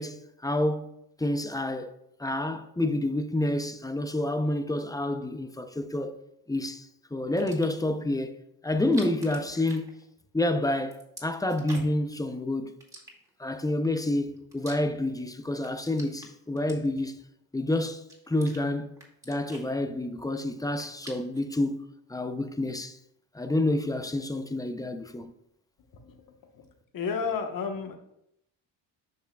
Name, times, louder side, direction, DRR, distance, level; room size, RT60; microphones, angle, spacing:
voice 1, 0.0-1.9 2.2-6.2 6.5-8.4 8.6-9.9 10.3-12.7 13.4-17.2 17.5-18.0 18.3-19.0 19.3-21.8 22.1-23.0 23.3-25.3, left 1 dB, 10° left, 0.5 m, -29 dB
sound 1, 7.2-7.9 8.7-10.4 10.7-12.1 12.8-13.6 14.1-15.2 15.5-17.2 17.7-18.6 19.0-20.3 20.6-21.5, right 1 dB, 10° right, 2.1 m, -48 dB
voice 2, 25.9-26.2 26.5-26.7 26.9-28.0, left 5 dB, 50° left, 1.2 m, -32 dB
10.5 x 5.7 x 2.3 m
cardioid pair, 95°, 41 cm